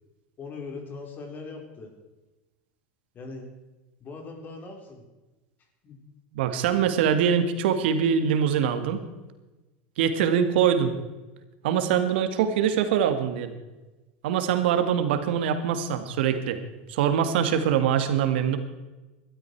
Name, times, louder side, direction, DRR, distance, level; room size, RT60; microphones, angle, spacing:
voice 1, 0.4-1.9 3.1-3.5 4.0-5.0 5.8-6.0, left 3 dB, 35° left, 2 dB, 4.5 m, -40 dB
voice 2, 6.3-9.0 10.0-10.9 11.6-13.5 14.2-16.6 16.9-18.6, right 8 dB, 75° right, 8 dB, 2.1 m, -23 dB
19.0 x 12.5 x 4.8 m, 1.1 s
supercardioid pair, 115°, 6 cm